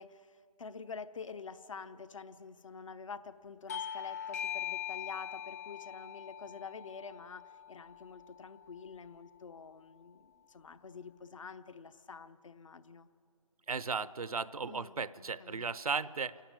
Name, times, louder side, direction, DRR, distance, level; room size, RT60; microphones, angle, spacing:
voice 1, 0.0-13.1 14.6-15.7, left 5 dB, 60° left, 12 dB, 0.9 m, -47 dB
Bell / Doorbell, 3.7-8.8, left 9 dB, 25° left, 0.4 m, -42 dB
voice 2, 13.7-16.4, right 5 dB, 80° right, 17 dB, 0.7 m, -36 dB
27.5 x 12.0 x 9.0 m, 2.8 s
figure-of-eight pair, 145°, 18 cm